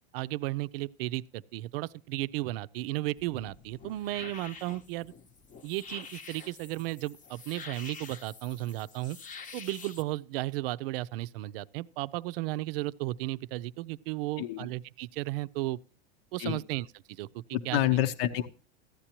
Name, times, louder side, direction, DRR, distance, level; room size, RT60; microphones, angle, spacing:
voice 1, 0.1-5.1 5.6-9.2 9.5-15.8 16.3-17.8, right 17 dB, 70° right, 0.5 m, -34 dB
sound 1, 3.2-10.0, left 5 dB, 25° left, 0.8 m, -47 dB
voice 2, 17.5-18.5, left 13 dB, 70° left, 1.0 m, -28 dB
14.5 x 9.9 x 3.0 m
supercardioid pair, 130°, 31 cm